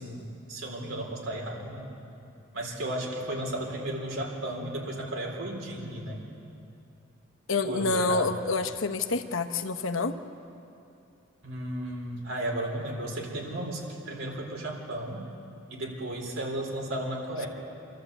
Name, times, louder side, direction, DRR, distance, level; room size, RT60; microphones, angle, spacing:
voice 1, 0.0-1.9 2.5-6.3 7.6-8.3 11.4-15.2 15.7-17.5, right 1 dB, 75° right, 0 dB, 4.0 m, -34 dB
voice 2, 7.5-10.1, left 3 dB, 75° left, 6 dB, 1.0 m, -27 dB
26.5 x 13.0 x 8.1 m, 2.7 s
head